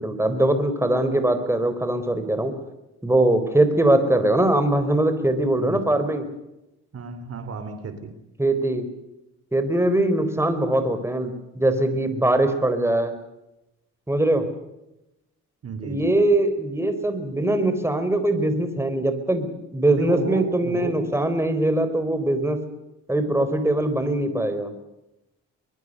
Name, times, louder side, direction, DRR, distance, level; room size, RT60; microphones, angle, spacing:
voice 1, 0.0-2.5 3.0-6.2 8.4-8.8 9.5-13.1 14.1-14.4 15.8-22.6 23.1-24.7, right 1 dB, 10° right, 8 dB, 4.3 m, -22 dB
voice 2, 6.9-8.1 15.6-16.1 19.9-21.2, right 5 dB, 50° right, 10 dB, 3.5 m, -33 dB
23.0 x 22.5 x 6.7 m, 0.92 s
cardioid pair, 90°, 30 cm